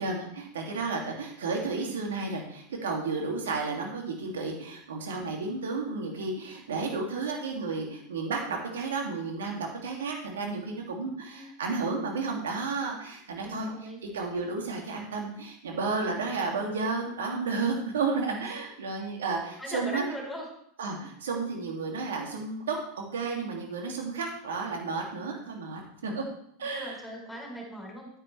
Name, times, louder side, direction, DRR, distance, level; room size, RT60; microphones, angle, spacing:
voice 1, 0.0-13.7 14.1-20.0 20.8-26.2 26.6-27.0, right 4 dB, 70° right, 1 dB, 2.7 m, -32 dB
voice 2, 1.5-2.0 11.3-11.5 13.4-14.0 18.4-18.6 19.6-20.5 26.6-28.2, equal, 5° left, -1 dB, 4.6 m, -40 dB
11.0 x 10.0 x 3.4 m, 0.68 s
figure-of-eight pair, 85°, 0 cm